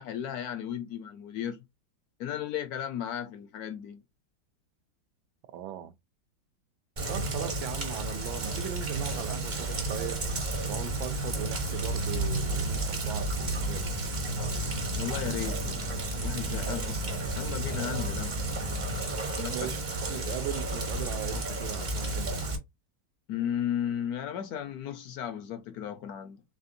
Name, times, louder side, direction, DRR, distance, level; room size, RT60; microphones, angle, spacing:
voice 1, 0.0-1.6 2.2-4.0 15.0-17.1 17.3-18.4 18.9-19.7 23.3-26.4, left 10 dB, 70° left, 0.9 m, -35 dB
voice 2, 5.5-5.9 7.1-10.2 10.7-13.9 19.5-19.8 20.1-22.4, right 11 dB, 85° right, 1.3 m, -38 dB
Rain, 7.0-22.6, right 1 dB, 40° right, 0.7 m, -32 dB
sound 1, 11.6-19.3, right 6 dB, 65° right, 1.1 m, -47 dB
4.2 x 3.4 x 2.5 m
omnidirectional pair, 2.1 m